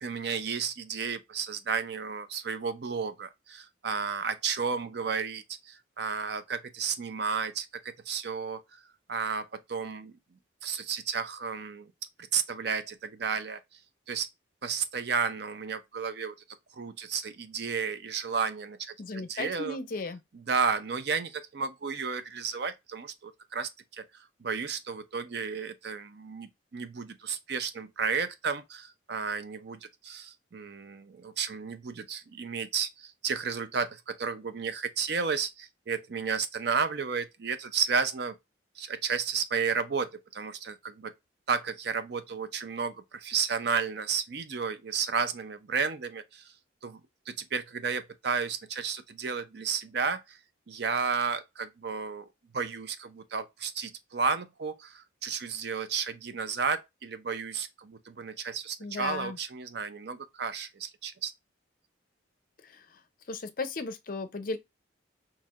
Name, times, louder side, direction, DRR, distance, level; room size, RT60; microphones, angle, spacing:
voice 1, 0.0-8.6 9.1-10.1 10.6-11.9 12.3-13.6 14.1-14.3 14.6-16.3 16.7-19.8 20.3-38.4 38.8-41.1 41.5-46.5 46.8-47.0 47.3-50.4 50.7-52.3 52.5-61.3, right 5 dB, 55° right, 0.5 m, -32 dB
voice 2, 19.0-20.2 58.8-59.4 62.6-63.0 63.3-64.6, left 3 dB, 45° left, 0.5 m, -36 dB
4.5 x 2.9 x 2.4 m
head